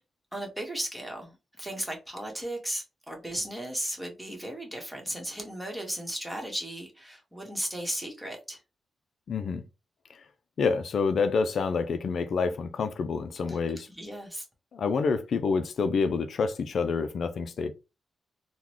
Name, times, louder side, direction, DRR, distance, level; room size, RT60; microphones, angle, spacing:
voice 1, 0.3-8.6 13.5-13.6 13.9-14.4, right 1 dB, 5° right, 1.3 m, -36 dB
voice 2, 9.3-9.6 10.6-13.9 14.7-17.7, left 5 dB, 70° left, 0.4 m, -27 dB
3.7 x 2.2 x 3.0 m
cardioid pair, 80°, 0 cm